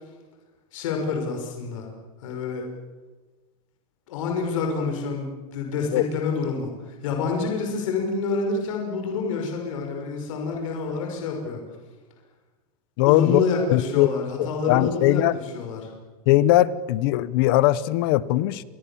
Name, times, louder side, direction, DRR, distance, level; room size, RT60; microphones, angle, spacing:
voice 1, 0.7-1.9 2.2-2.6 4.1-11.6 13.0-15.9, left 4 dB, 55° left, 2 dB, 5.7 m, -28 dB
voice 2, 13.0-13.4 13.7-14.1 14.4-15.3 16.3-18.6, left 15 dB, 35° left, 18 dB, 1.0 m, -20 dB
30.0 x 24.5 x 7.3 m, 1.3 s
supercardioid pair, 180°, 20 cm